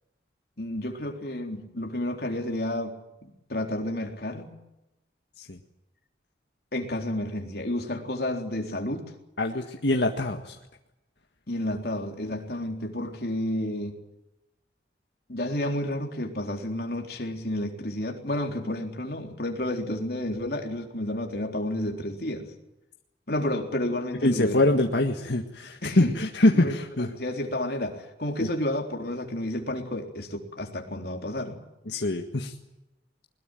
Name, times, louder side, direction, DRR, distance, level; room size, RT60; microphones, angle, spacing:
voice 1, 0.6-4.6 6.7-9.1 11.5-14.0 15.3-22.5 23.3-24.6 25.8-26.1 26.5-26.8 27.1-31.6, left 1 dB, 55° left, 2 dB, 3.8 m, -31 dB
voice 2, 9.4-10.6 24.2-27.1 28.4-28.5 31.9-32.5, left 1 dB, 75° left, 3 dB, 1.8 m, -24 dB
21.5 x 20.5 x 9.2 m, 0.93 s
head